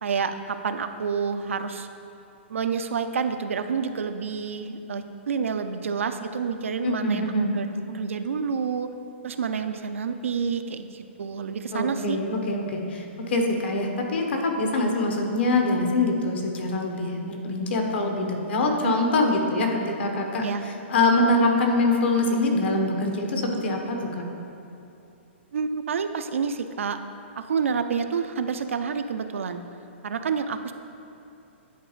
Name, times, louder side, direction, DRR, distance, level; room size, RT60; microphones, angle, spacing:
voice 1, 0.0-1.9 2.5-7.2 7.5-8.9 9.2-12.2 18.8-19.1 20.4-20.6 25.5-27.0 27.3-29.6 30.0-30.7, right 6 dB, 90° right, 9 dB, 0.4 m, -28 dB
voice 2, 6.8-7.5 11.7-20.4 20.9-24.2, left 2 dB, 60° left, 2 dB, 1.0 m, -24 dB
10.0 x 4.0 x 3.1 m, 2.7 s
hypercardioid pair, 155°, 7 cm